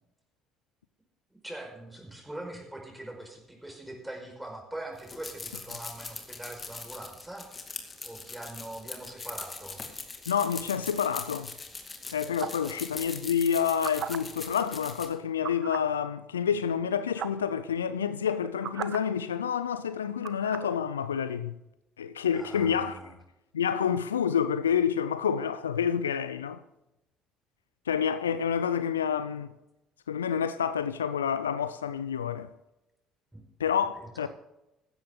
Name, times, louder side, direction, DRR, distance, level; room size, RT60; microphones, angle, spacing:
voice 1, 1.4-7.5 8.0-9.8 12.2-12.8 22.3-23.1 33.3-33.4 34.0-34.3, right 1 dB, 5° right, 5.0 m, -42 dB
sound 1, 4.9-15.1, left 4 dB, 30° left, 2.3 m, -41 dB
voice 2, 10.3-11.5 12.1-21.5 22.0-23.0 23.5-26.6 27.9-29.5 30.1-32.5 33.6-34.3, left 8 dB, 85° left, 0.5 m, -28 dB
sound 2, 12.4-12.7 13.6-14.2 15.4-15.9 16.8-16.9 17.1-17.5 18.3-19.0 20.2-20.7, right 9 dB, 55° right, 0.8 m, -36 dB
15.0 x 11.5 x 3.8 m
figure-of-eight pair, 55°, 0 cm